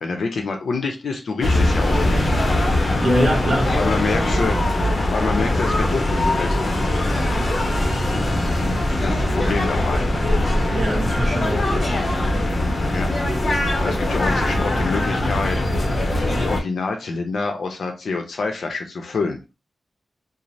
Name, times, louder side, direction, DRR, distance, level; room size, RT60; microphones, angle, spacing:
voice 1, 0.0-2.3 3.6-4.6 4.9-6.7 8.7-10.1 12.9-13.1 13.8-15.6 16.4-19.4, left 4 dB, 80° left, 4 dB, 0.6 m, -27 dB
sound 1, 1.4-16.6, left 1 dB, 40° left, 0.7 m, -21 dB
voice 2, 3.0-3.7 10.7-12.1, equal, 45° right, -1 dB, 1.1 m, -23 dB
3.1 x 2.0 x 2.6 m, 0.27 s
wide cardioid pair, 135°, 0 cm